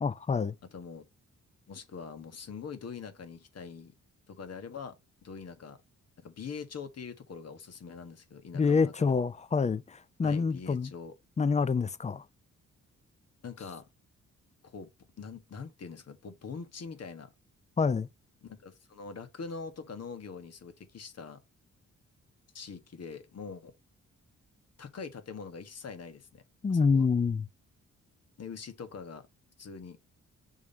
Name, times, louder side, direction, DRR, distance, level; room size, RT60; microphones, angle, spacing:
voice 1, 0.0-0.5 8.5-10.9 11.4-12.2 17.8-18.1 26.6-27.5, left 5 dB, 25° left, 0.5 m, -27 dB
voice 2, 0.7-1.1 1.7-3.9 4.3-5.0 5.2-5.8 6.2-9.2 10.2-11.1 13.4-13.9 14.6-14.9 15.2-17.3 18.4-21.4 22.5-23.7 24.8-26.4 26.7-27.1 28.4-29.3 29.6-30.0, left 5 dB, 55° left, 1.6 m, -43 dB
6.3 x 3.6 x 4.2 m
cardioid pair, 95°, 30 cm